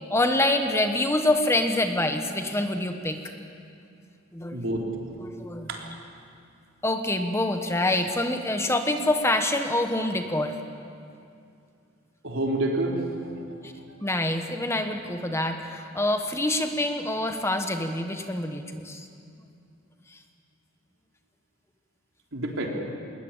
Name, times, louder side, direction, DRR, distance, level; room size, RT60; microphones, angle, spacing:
voice 1, 0.1-3.2 4.3-4.6 5.2-6.0 6.8-10.6 13.6-13.7 14.0-19.1, left 1 dB, 15° left, 6 dB, 1.2 m, -26 dB
voice 2, 4.5-4.9 5.7-5.8 12.2-13.6 22.3-22.7, right 1 dB, 75° right, 0 dB, 3.8 m, -28 dB
21.0 x 20.0 x 8.9 m, 2.5 s
head